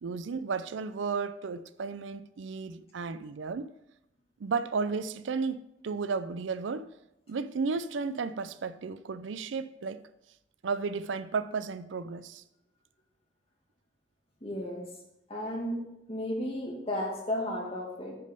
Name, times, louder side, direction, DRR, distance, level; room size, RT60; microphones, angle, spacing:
voice 1, 0.0-3.7 4.4-6.9 7.3-10.0 10.6-12.4, right 4 dB, 85° right, 0.5 m, -33 dB
voice 2, 14.4-14.9 15.3-15.8 16.1-18.2, left 1 dB, 35° left, 2.1 m, -33 dB
9.4 x 5.3 x 5.3 m
head